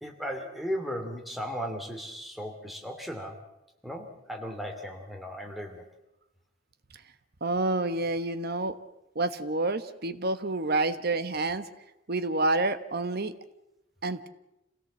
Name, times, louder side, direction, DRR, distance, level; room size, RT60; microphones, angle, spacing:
voice 1, 0.0-3.4 3.8-5.8, equal, ahead, 2 dB, 2.6 m, -36 dB
voice 2, 7.4-8.7 9.1-11.7 12.1-13.3 14.0-14.3, right 2 dB, 55° right, 12 dB, 1.2 m, -28 dB
27.5 x 17.0 x 7.3 m, 0.91 s
head